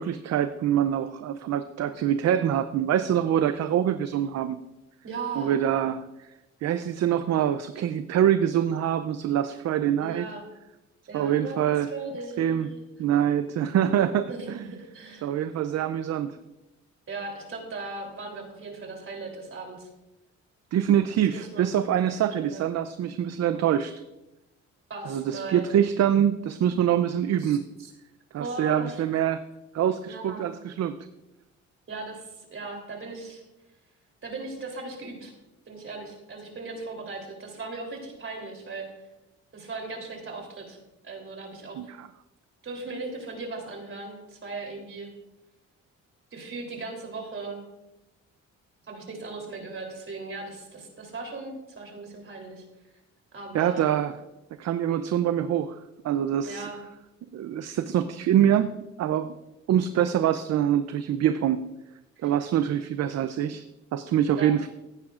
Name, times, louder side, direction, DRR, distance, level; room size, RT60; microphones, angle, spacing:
voice 1, 0.0-4.6 5.4-6.1 6.6-10.3 11.1-11.9 12.4-12.7 13.0-14.6 15.2-16.4 20.7-23.9 25.1-27.6 28.3-29.4 29.7-31.0 41.8-42.1 53.5-54.1 54.6-55.8 56.0-56.7 57.3-58.7 59.0-59.3 59.7-61.6 62.2-63.6 63.9-64.7, right 10 dB, 60° right, 11 dB, 0.5 m, -25 dB
voice 2, 5.0-5.5 10.0-10.4 11.1-12.8 14.3-15.3 17.1-19.9 21.3-22.7 24.9-25.7 27.4-27.9 28.4-29.0 30.0-30.4 31.9-33.4 34.2-35.3 35.7-38.9 39.5-40.8 41.0-41.8 42.6-45.1 46.3-47.6 48.9-52.9 53.3-53.9 56.4-56.8 62.2-62.3 64.4-64.7, right 3 dB, 45° right, 2 dB, 3.3 m, -38 dB
15.5 x 9.4 x 2.5 m, 0.97 s
cardioid pair, 90°, 30 cm